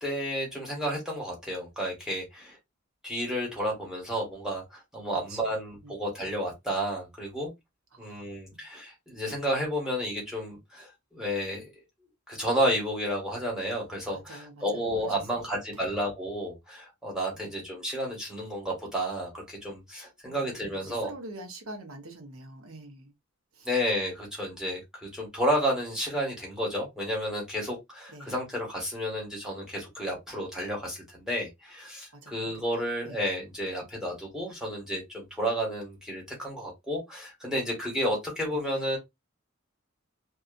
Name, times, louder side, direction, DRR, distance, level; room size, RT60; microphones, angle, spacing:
voice 1, 0.0-2.6 3.0-7.5 8.0-11.7 12.3-21.1 23.6-39.0, equal, 5° right, 1.2 m, -31 dB
voice 2, 7.9-8.6 14.1-15.9 17.4-17.5 20.2-23.1 23.5-23.7 28.1-28.3 32.2-32.4 32.7-33.2 38.5-39.0, right 2 dB, 85° right, 0.8 m, -46 dB
2.7 x 2.3 x 2.4 m
head